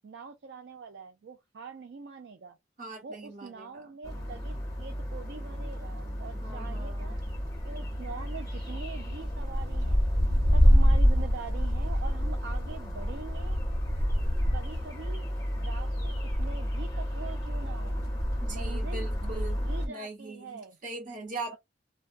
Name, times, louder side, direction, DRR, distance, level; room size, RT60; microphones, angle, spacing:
voice 1, 0.0-2.6 3.0-7.2 7.6-10.0 10.5-13.6 14.5-15.2 15.6-16.1 16.4-18.0 18.5-20.8, right 5 dB, 65° right, 0.4 m, -44 dB
voice 2, 2.8-3.9 6.4-7.2 18.4-21.6, right 3 dB, 45° right, 1.1 m, -41 dB
sound 1, 4.0-19.9, equal, 20° left, 0.8 m, -28 dB
2.3 x 2.2 x 2.5 m
head